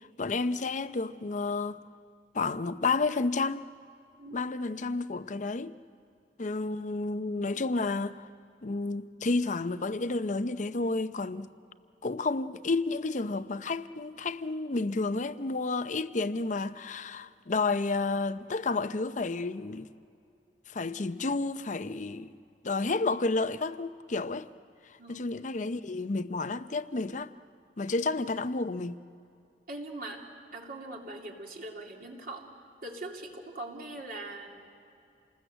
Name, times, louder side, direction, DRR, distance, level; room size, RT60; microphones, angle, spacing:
voice 1, 0.2-1.8 2.3-3.7 4.3-5.8 6.4-8.2 8.6-11.5 12.0-19.9 20.7-22.3 22.6-24.5 25.1-27.3 27.8-29.0, left 3 dB, 45° left, 0.7 m, -31 dB
voice 2, 25.0-25.3 29.7-32.5 32.8-34.7, right 2 dB, 55° right, 2.8 m, -42 dB
28.5 x 20.0 x 7.9 m
head